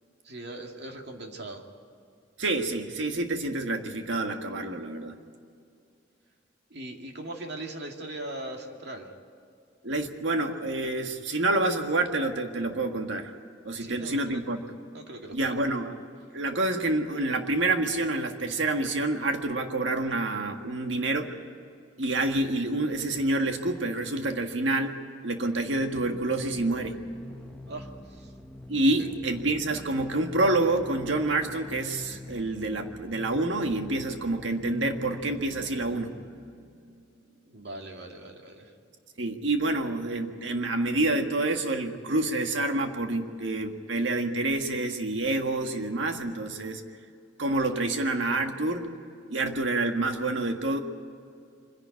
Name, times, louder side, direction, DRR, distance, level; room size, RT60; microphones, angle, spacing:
voice 1, 0.2-1.6 6.7-9.1 13.8-14.4 14.9-15.5 27.7-28.3 29.0-29.1 37.5-38.7, right 1 dB, 60° right, 2 dB, 2.3 m, -40 dB
voice 2, 2.4-5.2 9.8-13.3 13.6-14.6 15.3-16.0 16.3-21.3 22.0-25.0 25.2-27.0 28.7-36.1 36.4-37.0 39.2-46.8 47.4-48.9 49.3-50.8, right 2 dB, 75° right, 5 dB, 1.7 m, -28 dB
sound 1, 25.9-36.7, left 1 dB, 5° left, 0.8 m, -45 dB
25.0 x 11.0 x 9.6 m, 2.5 s
head